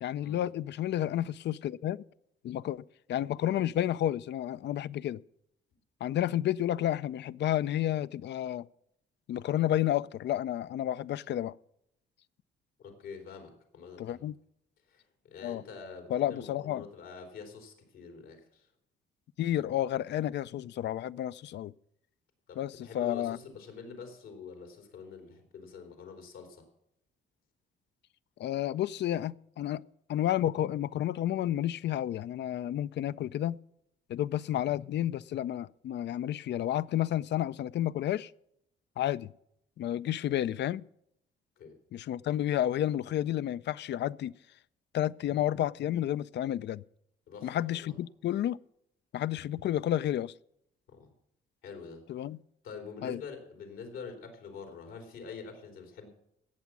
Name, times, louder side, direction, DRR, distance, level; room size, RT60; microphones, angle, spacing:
voice 1, 0.0-2.0 2.4-2.8 3.1-5.2 6.0-8.7 9.3-11.5 14.0-14.3 15.4-15.6 16.1-16.9 19.4-21.7 22.6-23.4 28.4-29.8 30.1-33.6 34.1-38.3 39.0-39.3 39.8-40.8 41.9-44.4 44.9-46.8 47.4-48.6 49.1-50.3 52.1-52.4 53.0-53.2, left 12 dB, 60° left, 0.4 m, -31 dB
voice 2, 12.8-14.3 14.9-18.7 22.5-26.7 40.3-40.4 41.6-41.8 47.3-47.9 50.9-51.1 51.6-52.0 52.6-56.1, left 5 dB, 85° left, 3.4 m, -46 dB
17.5 x 7.1 x 6.1 m
cardioid pair, 90°, 20 cm